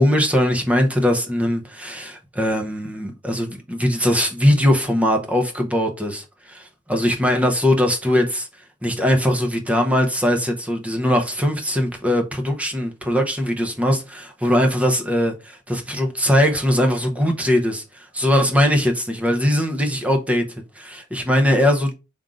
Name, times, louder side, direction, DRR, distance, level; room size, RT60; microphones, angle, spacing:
voice 1, 0.0-20.4 20.7-21.9, left 1 dB, 5° right, 0.8 m, -20 dB
3.8 x 2.7 x 4.8 m
head